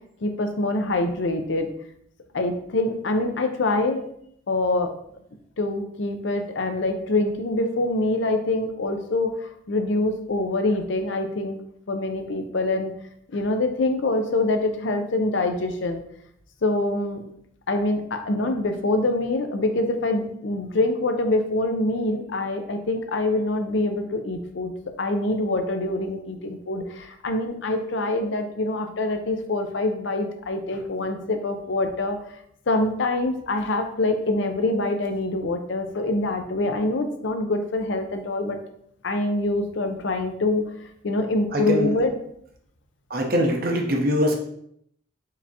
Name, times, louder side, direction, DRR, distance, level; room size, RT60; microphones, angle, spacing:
voice 1, 0.2-1.7 2.3-4.0 4.5-4.9 5.6-11.6 11.9-12.9 13.3-16.0 16.6-17.2 17.7-24.7 25.0-32.2 32.7-38.6 39.0-40.6 41.0-42.1, left 2 dB, 65° left, 6 dB, 0.6 m, -25 dB
voice 2, 41.5-41.9 43.1-44.3, equal, 45° right, 2 dB, 0.7 m, -22 dB
4.8 x 3.4 x 2.8 m, 0.69 s
head